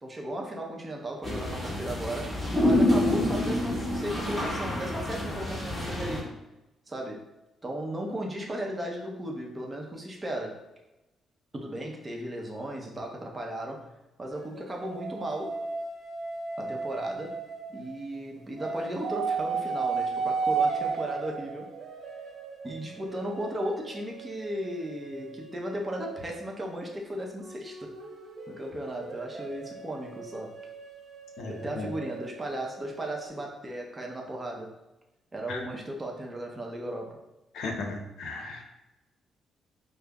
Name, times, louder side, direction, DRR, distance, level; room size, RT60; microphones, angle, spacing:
voice 1, 0.0-6.3 6.9-7.2 7.6-10.6 11.5-13.9 14.2-15.6 16.6-17.4 17.7-21.7 22.6-28.0 28.5-30.5 31.4-34.7 35.3-37.2, right 1 dB, 25° right, 0 dB, 0.6 m, -36 dB
sound 1, 1.2-6.2, left 1 dB, 5° right, 1.2 m, -27 dB
sound 2, 14.3-18.1 18.6-26.7 27.4-33.3, right 5 dB, 65° right, 0.6 m, -35 dB
voice 2, 31.4-31.9 35.5-35.6 37.5-38.6, left 3 dB, 75° left, 2 dB, 0.6 m, -36 dB
4.9 x 2.0 x 2.3 m, 0.98 s
cardioid pair, 90°, 0 cm